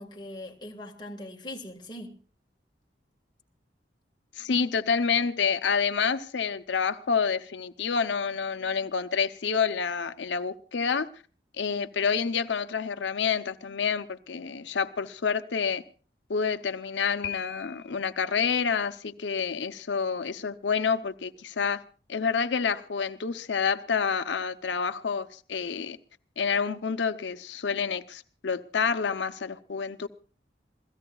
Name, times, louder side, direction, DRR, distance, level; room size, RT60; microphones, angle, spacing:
voice 1, 0.0-2.2, left 1 dB, 25° left, 1.6 m, -41 dB
voice 2, 4.4-11.1 11.6-15.8 16.3-21.8 22.1-26.0 26.4-30.1, left 6 dB, 90° left, 0.6 m, -28 dB
Piano, 17.2-18.2, left 10 dB, 60° left, 1.2 m, -38 dB
27.5 x 16.5 x 2.3 m
head